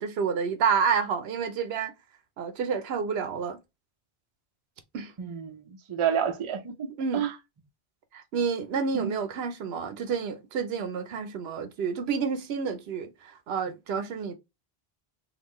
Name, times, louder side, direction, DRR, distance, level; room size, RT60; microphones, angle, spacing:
voice 1, 0.0-1.9 2.4-3.6 4.9-5.1 7.0-7.3 8.1-14.3, right 6 dB, 80° right, 0.9 m, -29 dB
voice 2, 5.2-7.3 8.9-9.1, right 8 dB, 40° right, 0.5 m, -29 dB
3.6 x 2.5 x 3.0 m
omnidirectional pair, 1.0 m